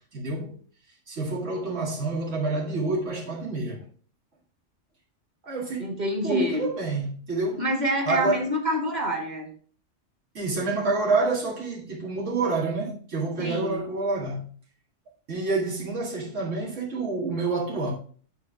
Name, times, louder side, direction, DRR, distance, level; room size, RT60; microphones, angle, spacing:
voice 1, 0.1-0.6 1.1-3.8 5.4-5.9 6.2-7.7 8.1-8.4 10.3-14.5 15.3-17.9, right 3 dB, 85° right, 2.4 m, -28 dB
voice 2, 5.8-6.7 7.6-9.5 13.4-13.8, equal, 35° right, 1.8 m, -27 dB
9.6 x 3.6 x 4.7 m
omnidirectional pair, 1.2 m